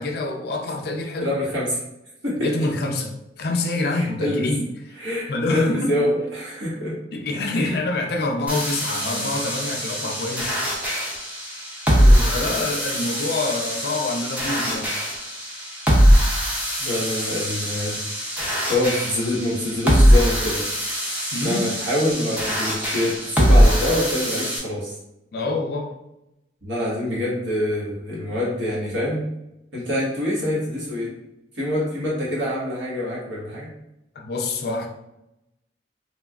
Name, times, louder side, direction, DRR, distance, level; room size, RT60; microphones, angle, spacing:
voice 1, 0.0-1.3 2.4-4.7 5.3-6.0 7.1-10.6 12.2-15.0 21.3-21.7 25.3-25.9 34.2-34.9, left 2 dB, 55° left, 2 dB, 0.4 m, -26 dB
voice 2, 1.2-1.8 2.2-2.5 3.9-4.5 5.0-7.0 7.6-7.8 11.9-12.6 16.8-18.3 18.7-20.6 21.4-24.9 26.6-29.2 29.7-31.1 31.5-33.7, left 1 dB, 85° right, -6 dB, 1.3 m, -25 dB
sound 1, 8.5-24.6, equal, 10° right, 0.5 m, -21 dB
3.1 x 2.3 x 2.3 m, 0.87 s
head